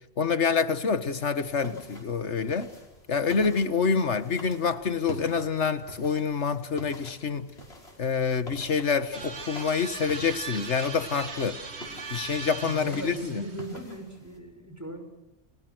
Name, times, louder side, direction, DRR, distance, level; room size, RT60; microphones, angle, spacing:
voice 1, 0.2-2.7 3.1-7.5 8.0-11.6 12.1-13.4, left 5 dB, 85° left, 1.8 m, -27 dB
sound 1, 1.4-14.4, left 1 dB, 65° left, 6.0 m, -47 dB
sound 2, 9.1-13.8, right 4 dB, 70° right, 2.1 m, -39 dB
voice 2, 12.6-15.0, right 1 dB, 15° right, 6.3 m, -39 dB
29.5 x 25.5 x 6.3 m
omnidirectional pair, 1.2 m